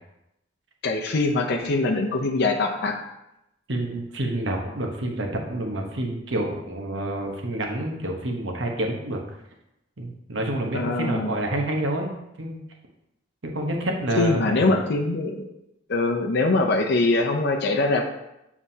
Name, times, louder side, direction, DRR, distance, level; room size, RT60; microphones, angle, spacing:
voice 1, 0.8-3.0 10.7-11.3 14.2-15.4 15.9-18.1, left 2 dB, 60° left, 2 dB, 0.6 m, -23 dB
voice 2, 3.7-9.2 10.0-12.1 12.4-12.6 13.4-14.6, right 1 dB, 75° right, 2 dB, 1.0 m, -28 dB
7.2 x 4.8 x 2.8 m, 0.87 s
head